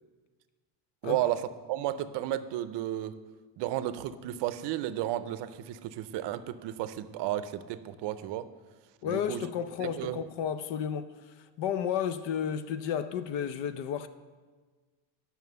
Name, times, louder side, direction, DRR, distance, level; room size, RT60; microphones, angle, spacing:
voice 1, 1.0-3.2 3.6-8.5 9.0-9.4 9.8-10.2, right 13 dB, 65° right, 0.6 m, -33 dB
voice 2, 9.0-11.1 11.6-14.1, left 8 dB, 65° left, 0.6 m, -32 dB
9.3 x 5.8 x 6.7 m
cardioid pair, 165°, 47 cm